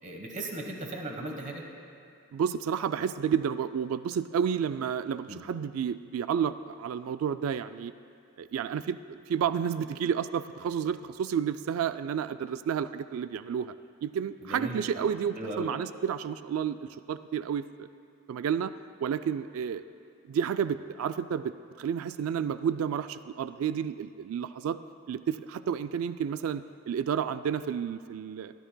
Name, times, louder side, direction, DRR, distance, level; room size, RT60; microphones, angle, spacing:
voice 1, 0.0-1.7 5.3-5.4 14.4-15.1 15.3-15.7, right 1 dB, 35° right, 2 dB, 1.2 m, -37 dB
voice 2, 2.3-7.9 8.4-13.7 14.0-17.9 18.3-18.7 19.0-19.8 20.3-24.8 25.1-28.5, right 8 dB, 80° right, 12 dB, 0.3 m, -31 dB
21.0 x 13.0 x 2.2 m, 2.6 s
head